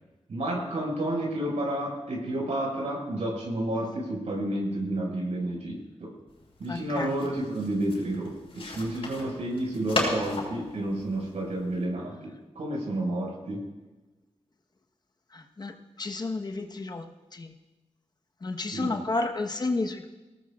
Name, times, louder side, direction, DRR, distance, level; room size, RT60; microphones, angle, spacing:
voice 1, 0.3-6.1 6.6-13.6 18.7-18.9, right 1 dB, 85° right, -2 dB, 5.7 m, -30 dB
sound 1, 6.3-11.8, left 2 dB, 55° left, 6.0 m, -36 dB
voice 2, 6.7-7.1 15.3-15.7 16.0-17.0 17.3-17.5 18.4-20.1, left 3 dB, 35° left, 4 dB, 1.2 m, -31 dB
24.5 x 18.0 x 2.5 m, 1.2 s
wide cardioid pair, 150°, 11 cm